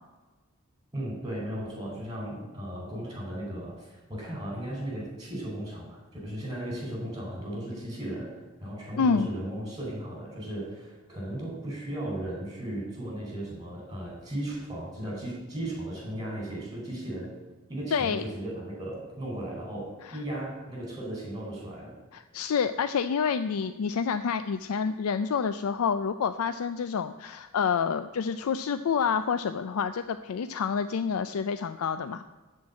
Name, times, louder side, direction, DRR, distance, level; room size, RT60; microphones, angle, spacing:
voice 1, 0.9-17.3 17.7-22.0, right 1 dB, 20° right, -2 dB, 4.1 m, -36 dB
voice 2, 9.0-9.3 17.9-18.2 22.1-32.2, left 6 dB, 80° left, 11 dB, 0.4 m, -28 dB
13.0 x 4.6 x 8.3 m, 1.2 s
head